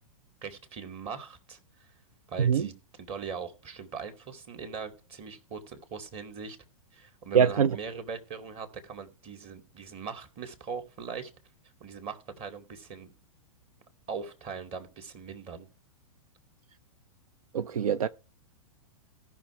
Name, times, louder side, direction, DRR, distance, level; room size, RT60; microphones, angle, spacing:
voice 1, 0.4-1.6 2.3-6.6 6.9-11.3 11.8-13.1 14.1-15.7, right 6 dB, 35° right, 2.4 m, -40 dB
voice 2, 7.3-7.8 17.5-18.1, right 7 dB, 80° right, 0.5 m, -23 dB
17.0 x 6.0 x 3.3 m
hypercardioid pair, 110°, 18 cm